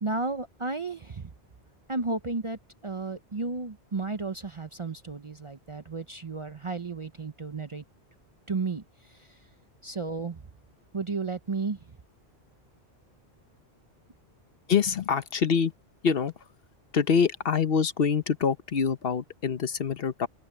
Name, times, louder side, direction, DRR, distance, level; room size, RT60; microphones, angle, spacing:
voice 1, 0.0-1.3 1.9-7.8 8.5-9.4 9.8-10.4 10.9-11.8, right 3 dB, 35° right, 0.6 m, -33 dB
voice 2, 14.7-15.7 16.0-16.5 16.9-20.3, left 6 dB, 60° left, 1.0 m, -25 dB
open air
omnidirectional pair, 1.1 m